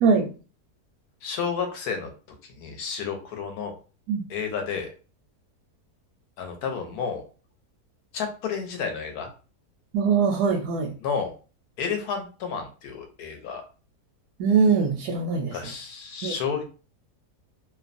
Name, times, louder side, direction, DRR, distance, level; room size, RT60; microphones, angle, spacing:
voice 1, 1.2-2.1 2.4-3.7 4.3-4.9 6.4-7.2 8.1-9.3 11.0-11.3 11.8-13.6 15.5-16.6, left 6 dB, 75° left, 4 dB, 1.1 m, -31 dB
voice 2, 9.9-10.9 14.4-15.6 16.2-16.3, right 5 dB, 80° right, 1 dB, 1.1 m, -22 dB
2.9 x 2.0 x 2.5 m, 0.35 s
omnidirectional pair, 1.7 m